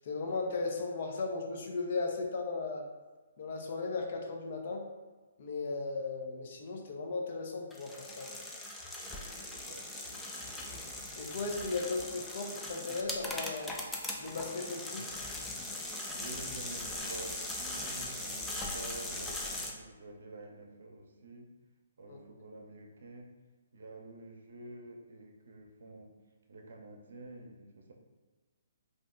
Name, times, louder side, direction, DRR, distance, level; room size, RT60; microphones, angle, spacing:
voice 1, 0.0-2.8 3.4-4.8 5.4-8.3 11.1-13.7 14.2-15.1 22.1-22.2, left 3 dB, 55° left, 1 dB, 0.6 m, -36 dB
sound 1, 7.7-19.7, left 1 dB, 5° left, 0.3 m, -40 dB
voice 2, 9.6-10.7 16.1-21.5 22.0-23.3 23.7-26.1 26.5-27.9, right 2 dB, 70° right, 1 dB, 0.6 m, -49 dB
2.6 x 2.1 x 3.6 m, 1.2 s
hypercardioid pair, 145°, 0 cm